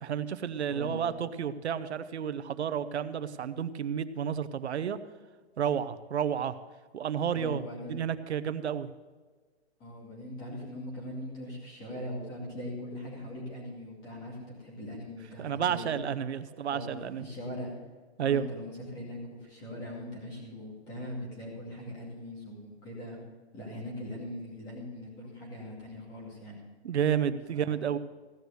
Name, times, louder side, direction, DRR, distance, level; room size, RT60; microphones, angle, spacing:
voice 1, 0.0-5.0 5.6-6.6 6.9-7.6 7.9-8.9 15.4-17.3 18.2-18.5 26.8-28.0, right 8 dB, 90° right, 13 dB, 0.9 m, -31 dB
voice 2, 0.7-1.1 7.3-7.9 9.8-15.9 16.7-17.7 18.2-23.2 23.5-26.6 27.5-27.8, left 1 dB, 10° left, -3 dB, 2.4 m, -41 dB
16.0 x 6.4 x 6.9 m, 1.4 s
hypercardioid pair, 180°, 33 cm